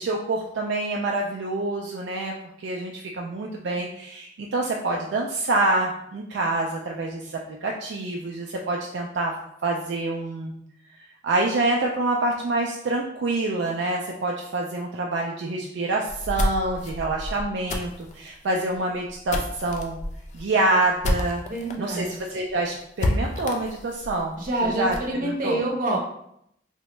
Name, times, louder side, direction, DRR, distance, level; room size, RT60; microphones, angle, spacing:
voice 1, 0.0-2.3 2.6-9.3 9.6-10.5 10.9-20.0 20.3-21.4 21.8-25.6, right 2 dB, 70° right, 0 dB, 0.3 m, -26 dB
sound 1, 16.1-21.8 22.1-22.2 22.5-22.6 23.0-25.1, left 1 dB, 40° left, 0.3 m, -30 dB
voice 2, 21.5-22.1 24.4-26.0, right 1 dB, 45° right, -2 dB, 0.8 m, -26 dB
3.5 x 2.1 x 3.0 m, 0.74 s
head